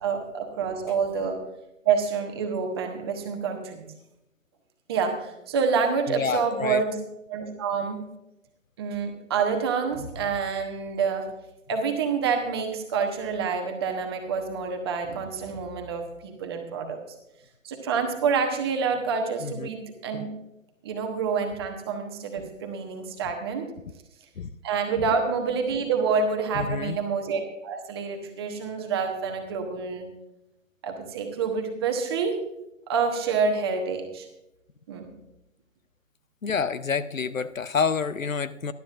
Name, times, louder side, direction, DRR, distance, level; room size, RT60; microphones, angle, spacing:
voice 1, 0.0-1.4 1.8-3.9 4.9-6.9 7.3-8.0 8.8-11.3 11.7-17.0 17.6-20.3 20.8-23.7 24.6-30.0 30.8-32.4 32.9-34.3 34.9-35.1, right 5 dB, 20° right, 4 dB, 1.1 m, -27 dB
voice 2, 6.1-6.8 19.4-19.7 24.4-24.5 25.0-25.1 26.5-27.0 36.4-38.7, left 5 dB, 75° left, 14 dB, 0.8 m, -28 dB
18.5 x 12.0 x 2.5 m, 0.88 s
figure-of-eight pair, 145°, 40 cm